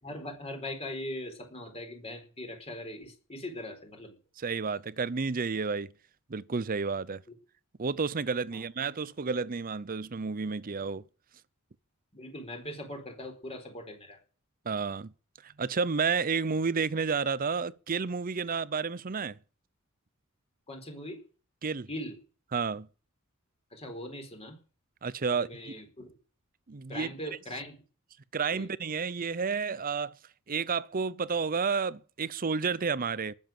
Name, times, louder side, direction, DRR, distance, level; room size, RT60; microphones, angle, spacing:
voice 1, 0.0-4.2 8.5-8.6 12.1-14.2 20.7-21.2 21.9-22.2 23.7-24.6 25.3-26.1 26.9-27.8 28.5-28.7, left 1 dB, 30° left, 4.4 m, -40 dB
voice 2, 4.4-5.9 6.3-7.2 7.8-11.0 14.6-15.1 15.4-19.4 21.6-21.9 22.5-22.9 25.0-25.7 26.7-27.1 28.3-30.2 30.5-33.3, right 5 dB, 40° right, 0.6 m, -31 dB
19.0 x 7.3 x 7.6 m
head